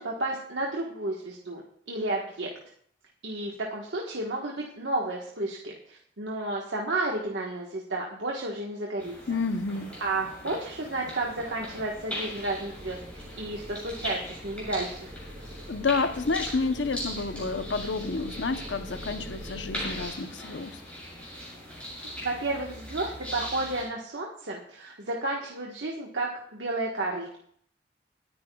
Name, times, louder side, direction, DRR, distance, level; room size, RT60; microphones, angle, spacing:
voice 1, 0.0-1.6 1.9-2.5 3.2-9.1 10.0-15.1 22.2-27.4, right 2 dB, 85° right, -2 dB, 1.4 m, -32 dB
sound 1, 9.0-23.8, equal, 5° left, 7.1 m, -40 dB
voice 2, 9.3-9.9 15.7-20.8, left 4 dB, 90° left, 10 dB, 0.8 m, -29 dB
sound 2, 11.3-20.1, equal, 30° right, 5.1 m, -44 dB
29.0 x 9.9 x 2.3 m, 0.64 s
head